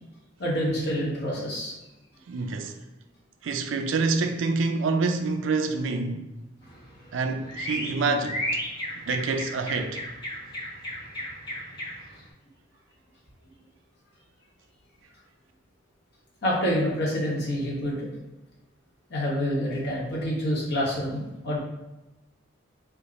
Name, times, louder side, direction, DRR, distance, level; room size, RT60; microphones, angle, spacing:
voice 1, 0.4-1.7 16.4-18.1 19.1-21.6, equal, 50° left, 1.2 m, -27 dB
voice 2, 2.3-2.8 3.4-6.3 7.1-8.6 9.0-10.0, right 3 dB, 70° right, 0.4 m, -27 dB
sound 1, 6.6-12.2, equal, 20° left, 1.2 m, -35 dB
3.5 x 2.3 x 3.8 m
head